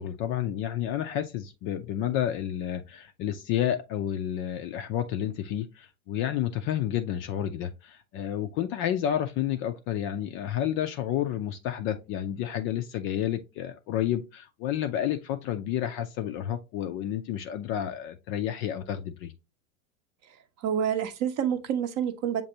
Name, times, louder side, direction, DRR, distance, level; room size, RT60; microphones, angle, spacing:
voice 1, 0.0-19.3, left 10 dB, 35° left, 0.4 m, -30 dB
voice 2, 20.2-22.4, right 9 dB, 40° right, 0.7 m, -28 dB
6.6 x 2.5 x 2.8 m
hypercardioid pair, 110°, 42 cm